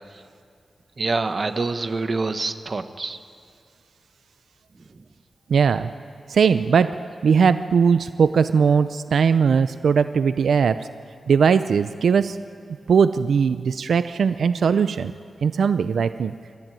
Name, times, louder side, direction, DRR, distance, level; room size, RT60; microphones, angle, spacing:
voice 1, 1.0-3.2, right 3 dB, 40° right, 9 dB, 1.0 m, -26 dB
voice 2, 5.5-5.9 6.3-6.9 7.2-10.9 11.3-12.4 12.9-15.1 15.4-16.3, right 6 dB, 80° right, 12 dB, 0.5 m, -19 dB
24.5 x 14.0 x 9.1 m, 2.3 s
wide cardioid pair, 135°, 0 cm